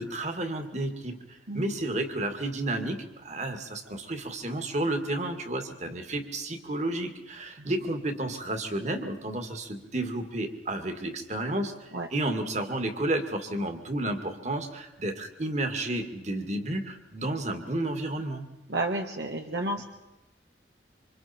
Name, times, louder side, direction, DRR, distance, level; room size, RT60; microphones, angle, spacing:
voice 1, 0.0-18.5, right 1 dB, 40° right, 6 dB, 2.2 m, -31 dB
voice 2, 18.7-19.8, right 2 dB, 70° right, 2 dB, 1.6 m, -31 dB
27.5 x 26.0 x 4.5 m, 0.98 s
head